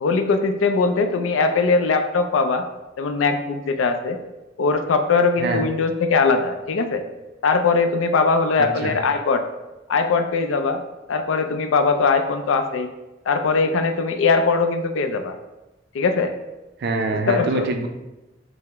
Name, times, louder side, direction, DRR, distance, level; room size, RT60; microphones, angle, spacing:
voice 1, 0.0-2.6 3.0-4.2 4.6-7.0 7.4-9.4 9.9-10.8 11.1-12.9 13.3-15.3 15.9-16.3 17.3-17.7, left 4 dB, 75° left, 7 dB, 0.4 m, -20 dB
voice 2, 8.6-9.0 16.8-17.9, right 3 dB, 55° right, 4 dB, 0.4 m, -24 dB
4.6 x 2.0 x 3.3 m, 1.0 s
head